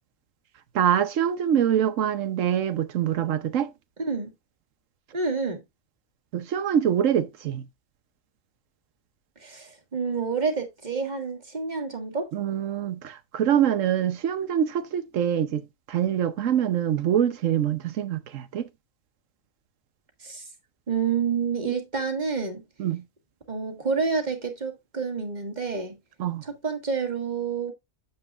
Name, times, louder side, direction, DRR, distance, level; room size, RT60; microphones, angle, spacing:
voice 1, 0.7-3.7 6.3-7.6 12.3-18.7 21.6-21.7 22.8-23.0 26.2-26.4, right 9 dB, 80° right, 1.2 m, -25 dB
voice 2, 4.0-4.3 5.1-5.6 9.4-12.3 20.2-20.4 20.9-22.6 23.5-26.0 26.4-27.7, right 5 dB, 35° right, 1.8 m, -28 dB
9.1 x 7.5 x 2.4 m
omnidirectional pair, 1.3 m